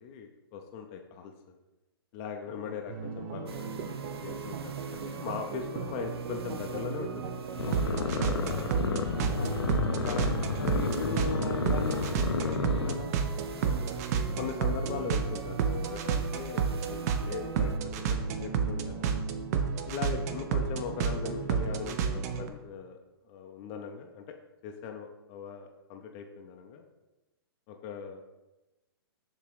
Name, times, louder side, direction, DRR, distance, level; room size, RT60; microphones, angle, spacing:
voice 1, 0.0-1.6 2.1-3.9 4.1-7.3 7.7-8.6 10.0-10.6 14.4-17.7 18.1-19.1 19.9-23.0 23.3-24.2 24.6-26.8 27.7-28.2, left 6 dB, 30° left, 3 dB, 0.5 m, -40 dB
voice 2, 2.5-2.8 9.3-9.7 10.4-14.3 20.3-20.4, left 5 dB, 65° left, 5 dB, 0.9 m, -40 dB
sound 1, 2.9-22.5, right 6 dB, 40° right, 0.5 m, -32 dB
sound 2, 3.5-17.8, right 5 dB, 85° right, 0.6 m, -45 dB
sound 3, 7.6-12.9, left 5 dB, 90° left, 0.6 m, -31 dB
6.9 x 2.8 x 4.8 m, 1.0 s
hypercardioid pair, 140°, 13 cm